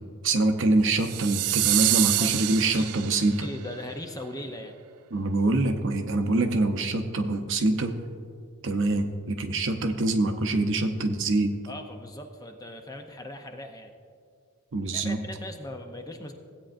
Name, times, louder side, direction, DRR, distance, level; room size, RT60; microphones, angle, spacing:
voice 1, 0.2-3.5 5.1-7.9 8.6-11.5 14.7-15.2, right 2 dB, 55° right, 6 dB, 0.7 m, -25 dB
sound 1, 1.0-3.4, right 15 dB, 90° right, 0.4 m, -26 dB
voice 2, 2.2-4.7 11.7-13.9 14.9-16.3, left 1 dB, 15° left, 5 dB, 0.6 m, -39 dB
16.0 x 8.5 x 2.6 m, 2.2 s
head